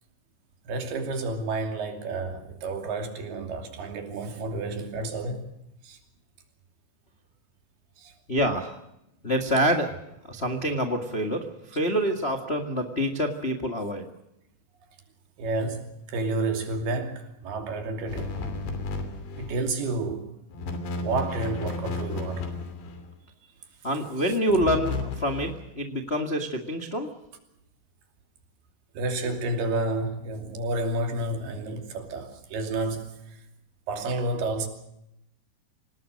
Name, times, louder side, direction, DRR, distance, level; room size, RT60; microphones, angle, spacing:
voice 1, 0.6-5.4 5.8-6.0 8.0-8.1 15.4-18.4 19.4-20.3 21.0-22.5 28.9-33.4 33.9-34.7, right 2 dB, 65° right, 4.6 m, -30 dB
voice 2, 8.3-8.8 9.2-9.9 10.2-14.1 23.8-27.1, equal, 55° left, 0.7 m, -26 dB
sound 1, 18.1-19.6 20.5-23.1 24.5-25.7, left 3 dB, 85° left, 5.2 m, -33 dB
26.5 x 19.0 x 6.5 m
omnidirectional pair, 5.0 m